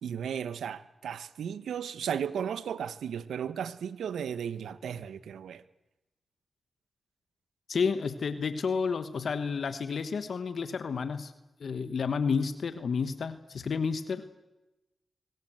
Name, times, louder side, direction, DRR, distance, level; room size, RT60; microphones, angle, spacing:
voice 1, 0.0-5.6, right 8 dB, 85° right, 1.1 m, -35 dB
voice 2, 7.7-11.3 11.6-14.2, left 5 dB, 70° left, 1.3 m, -31 dB
24.0 x 19.5 x 7.9 m
supercardioid pair, 45°, 0 cm